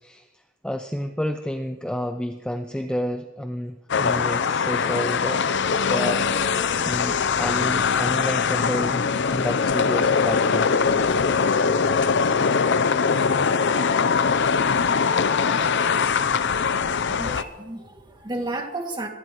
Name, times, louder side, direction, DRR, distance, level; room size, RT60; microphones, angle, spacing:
voice 1, 0.0-5.4 5.8-6.2 6.6-9.0 9.3-10.7, equal, 5° left, 6 dB, 0.5 m, -30 dB
sound 1, 3.9-17.4, left 5 dB, 55° left, 0.6 m, -22 dB
voice 2, 17.0-19.1, right 2 dB, 20° right, 1 dB, 2.3 m, -32 dB
24.0 x 18.0 x 3.1 m, 1.2 s
head